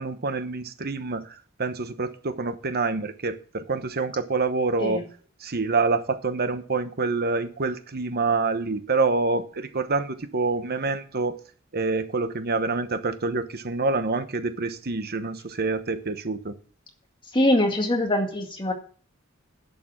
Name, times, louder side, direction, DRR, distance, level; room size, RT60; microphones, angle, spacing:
voice 1, 0.0-5.0 5.4-11.4 11.7-16.5, right 3 dB, 45° right, 10 dB, 1.0 m, -27 dB
voice 2, 17.3-18.7, left 1 dB, 25° left, 3 dB, 2.0 m, -22 dB
11.0 x 6.9 x 6.4 m, 0.43 s
head